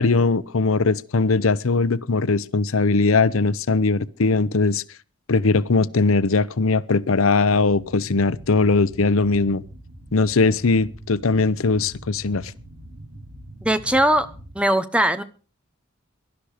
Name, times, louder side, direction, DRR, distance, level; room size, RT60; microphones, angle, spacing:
voice 1, 0.0-4.8 5.3-9.6 10.1-12.5, left 3 dB, 85° left, 0.7 m, -20 dB
sound 1, 7.5-14.6, right 1 dB, 70° right, 6.1 m, -42 dB
voice 2, 13.6-14.3 14.5-15.2, right 1 dB, 5° right, 1.0 m, -19 dB
18.5 x 11.5 x 5.0 m
head